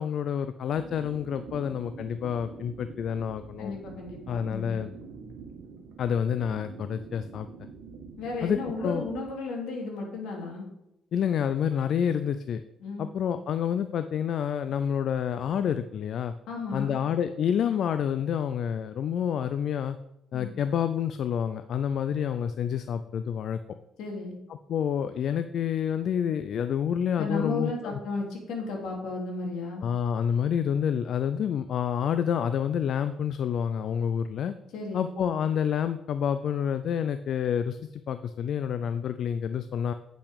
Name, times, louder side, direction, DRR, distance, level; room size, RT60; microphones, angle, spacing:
voice 1, 0.0-3.7 4.3-4.9 6.0-7.5 8.4-9.0 11.1-12.6 13.0-16.3 16.7-20.0 20.3-23.6 24.7-28.0 29.8-34.5 34.9-37.8 38.1-39.9, left 8 dB, 60° left, 11 dB, 0.4 m, -28 dB
sound 1, 0.7-9.3, right 5 dB, 90° right, 1.4 m, -45 dB
voice 2, 3.6-4.7 8.2-10.7 12.8-13.1 16.5-16.9 20.3-20.5 24.0-24.4 27.2-29.8 34.7-35.1, left 3 dB, 80° left, 0 dB, 2.8 m, -34 dB
8.5 x 5.7 x 5.2 m, 0.85 s
cardioid pair, 115°, 0 cm